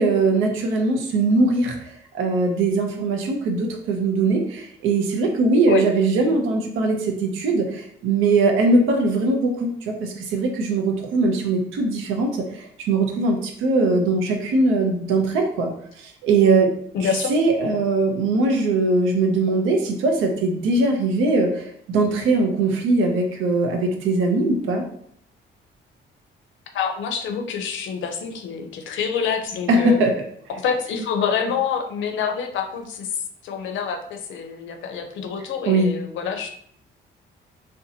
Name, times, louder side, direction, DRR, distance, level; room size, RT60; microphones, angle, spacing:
voice 1, 0.0-15.7 16.0-16.7 17.0-24.8 29.7-30.1 35.7-35.9, right 3 dB, 90° right, 3 dB, 0.6 m, -21 dB
voice 2, 16.9-17.3 26.7-30.0 30.6-33.1 33.4-36.5, left 6 dB, 75° left, 4 dB, 0.5 m, -26 dB
2.7 x 2.1 x 2.7 m, 0.65 s
cardioid pair, 90°, 20 cm